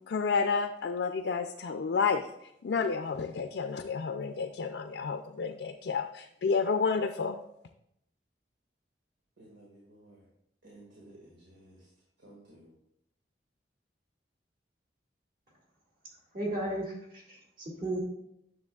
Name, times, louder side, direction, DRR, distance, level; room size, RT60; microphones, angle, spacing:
voice 1, 0.1-7.4, left 5 dB, 70° left, 0.4 m, -30 dB
voice 2, 9.4-10.2 10.6-11.9 12.2-12.7, right 1 dB, 85° right, 1.9 m, -55 dB
voice 3, 16.3-18.0, right 1 dB, 50° right, 2.2 m, -35 dB
9.7 x 6.9 x 2.3 m
head